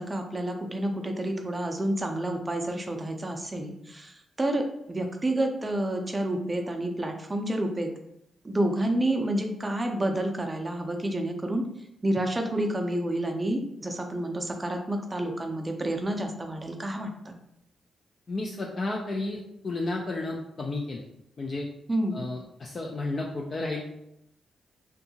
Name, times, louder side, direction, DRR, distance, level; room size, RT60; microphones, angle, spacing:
voice 1, 0.0-7.9 8.4-11.6 12.0-17.3 21.9-22.2, right 1 dB, 20° right, 4 dB, 0.4 m, -29 dB
voice 2, 18.3-21.0 21.4-21.7 22.1-23.8, left 2 dB, 45° left, 0 dB, 0.3 m, -32 dB
2.6 x 2.3 x 2.8 m, 0.80 s
cardioid pair, 80°, 0 cm